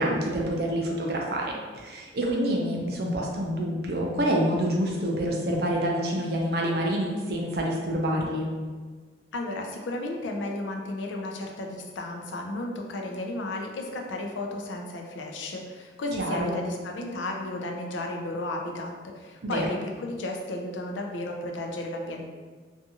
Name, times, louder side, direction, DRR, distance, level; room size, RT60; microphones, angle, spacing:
voice 1, 0.0-8.5 16.2-16.6 19.4-19.7, equal, 55° right, -1 dB, 0.5 m, -27 dB
voice 2, 9.3-22.2, left 2 dB, 85° left, 2 dB, 0.4 m, -33 dB
2.6 x 2.3 x 2.7 m, 1.5 s
head